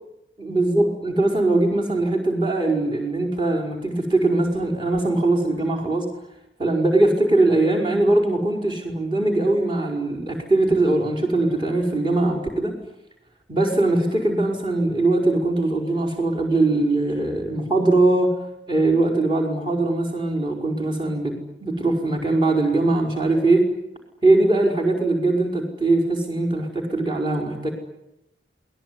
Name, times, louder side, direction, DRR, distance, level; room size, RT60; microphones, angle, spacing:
voice 1, 0.4-6.1 6.6-12.7 13.5-18.3 18.7-21.3 21.6-23.7 24.2-27.7, right 2 dB, 25° right, 0 dB, 5.4 m, -21 dB
27.5 x 21.0 x 9.8 m, 0.87 s
head